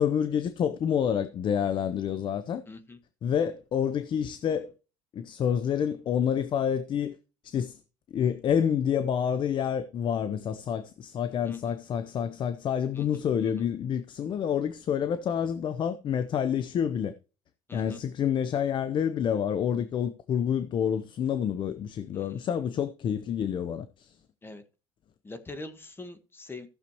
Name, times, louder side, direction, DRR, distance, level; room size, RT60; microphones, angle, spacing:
voice 1, 0.0-2.6 3.2-4.7 5.1-7.2 7.4-7.8 8.1-17.1 17.7-24.1, left 8 dB, 50° left, 0.7 m, -28 dB
voice 2, 2.7-3.0 11.5-11.8 12.9-13.5 17.7-18.0 22.1-22.4 24.4-24.6 25.2-26.7, left 2 dB, 20° left, 1.4 m, -44 dB
15.0 x 6.7 x 3.0 m
supercardioid pair, 90°, 11 cm